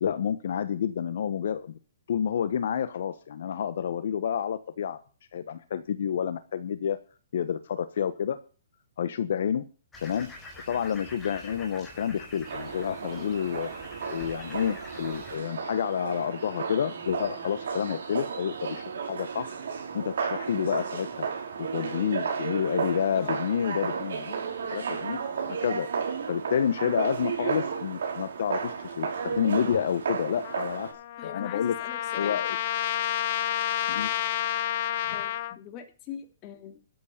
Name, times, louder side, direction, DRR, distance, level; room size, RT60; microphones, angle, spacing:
voice 1, 0.0-1.8 2.1-5.0 5.3-7.0 7.3-8.4 9.0-9.6 10.0-10.3 10.7-13.7 14.0-19.6 19.9-21.3 21.6-24.4 24.7-25.2 25.4-25.9 26.3-30.9 31.2-31.7 32.2-32.6 33.9-34.1, left 8 dB, 65° left, 13 dB, 1.2 m, -29 dB
sound 1, 9.9-15.4, left 2 dB, 10° left, 4.4 m, -46 dB
sound 2, 12.4-30.9, right 6 dB, 65° right, 6.3 m, -33 dB
Trumpet, 30.4-35.6, left 13 dB, 45° left, 0.7 m, -30 dB
voice 2, 31.2-32.4 35.1-36.9, left 9 dB, 25° left, 7 dB, 2.9 m, -43 dB
13.0 x 8.4 x 6.7 m, 0.35 s
hypercardioid pair, 155°, 0 cm